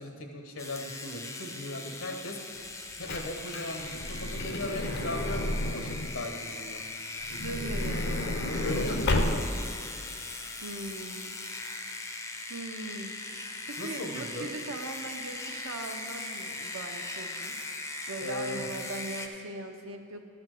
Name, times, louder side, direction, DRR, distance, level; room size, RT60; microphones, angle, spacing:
voice 1, 0.0-2.4 3.0-6.8 7.3-7.7 8.6-9.5 13.8-14.5 18.2-18.7, left 1 dB, 70° left, 3 dB, 1.2 m, -38 dB
sound 1, 0.6-19.3, left 2 dB, 15° left, 0.6 m, -40 dB
Truck / Door, 2.7-6.2 7.2-9.8 10.5-10.6 10.7-10.9, left 1 dB, 50° left, 0.7 m, -31 dB
voice 2, 7.4-8.3 10.6-11.4 12.5-20.2, right 2 dB, 75° right, 4 dB, 0.9 m, -40 dB
12.0 x 4.3 x 7.7 m, 2.5 s
head